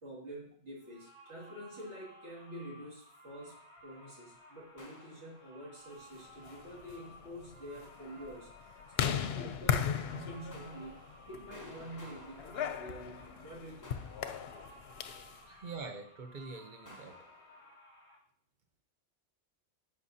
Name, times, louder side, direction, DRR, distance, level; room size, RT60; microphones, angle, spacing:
voice 1, 0.0-11.0 11.3-13.9 15.5-15.7, equal, 70° right, -4 dB, 2.5 m, -47 dB
sound 1, 0.8-18.2, equal, 15° right, 2.8 m, -57 dB
sound 2, 4.8-5.9 10.5-13.4 13.8-15.2 16.9-17.7, left 2 dB, 20° left, 0.7 m, -56 dB
sound 3, 6.3-15.4, left 8 dB, 65° left, 0.8 m, -38 dB
voice 2, 15.6-17.1, right 4 dB, 45° right, 5 dB, 1.0 m, -44 dB
11.5 x 5.3 x 2.8 m, 0.63 s
omnidirectional pair, 1.2 m